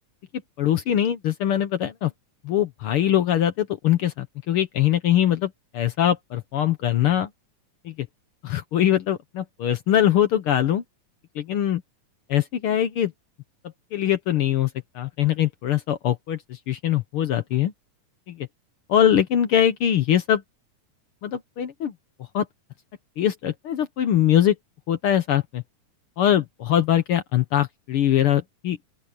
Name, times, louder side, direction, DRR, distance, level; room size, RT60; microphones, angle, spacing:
voice 1, 0.6-2.1 2.4-7.3 7.8-8.1 8.4-10.8 11.3-11.8 12.3-13.1 13.9-14.7 14.9-17.7 18.3-18.5 18.9-20.4 21.2-21.9 22.3-22.5 23.2-24.5 24.9-25.6 26.2-28.8, left 10 dB, 70° left, 1.3 m, -22 dB
open air
omnidirectional pair, 3.7 m